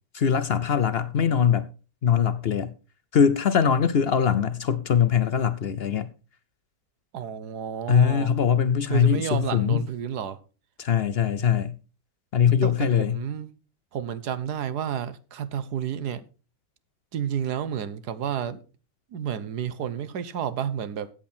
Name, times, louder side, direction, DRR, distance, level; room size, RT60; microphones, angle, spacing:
voice 1, 0.1-1.7 2.0-2.7 3.1-6.1 7.9-9.8 10.8-11.7 12.3-13.2, left 7 dB, 65° left, 0.6 m, -22 dB
voice 2, 7.1-8.3 8.9-10.4 12.6-13.5 13.9-16.2 17.1-18.6 19.1-21.1, right 9 dB, 70° right, 1.4 m, -30 dB
14.0 x 8.6 x 4.3 m
omnidirectional pair, 1.8 m